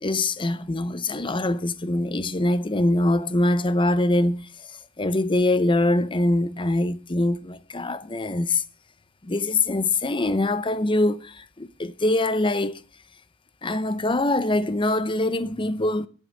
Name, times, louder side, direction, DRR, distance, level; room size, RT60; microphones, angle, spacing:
voice 1, 0.0-4.5 5.0-8.6 9.2-12.8 13.6-16.1, left 2 dB, 25° left, 0.8 m, -23 dB
11.0 x 6.8 x 8.4 m
head